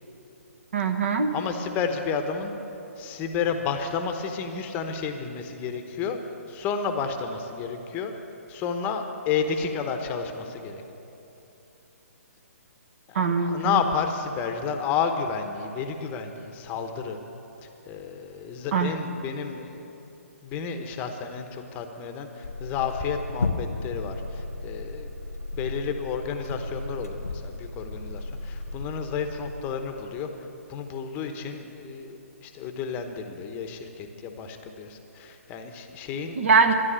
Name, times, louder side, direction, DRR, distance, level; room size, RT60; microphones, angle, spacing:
voice 1, 0.7-1.3 13.1-13.8 18.7-19.0 36.4-36.7, right 5 dB, 55° right, 6 dB, 1.3 m, -22 dB
voice 2, 1.3-2.5 3.0-6.2 6.5-8.1 8.5-10.8 13.1-17.2 17.6-19.8 20.4-25.1 25.5-30.3 30.7-36.5, left 6 dB, 20° left, 6 dB, 0.9 m, -31 dB
sound 1, 22.4-29.6, left 2 dB, 90° left, 1.4 m, -34 dB
13.0 x 10.5 x 8.8 m, 3.0 s
hypercardioid pair, 145°, 8 cm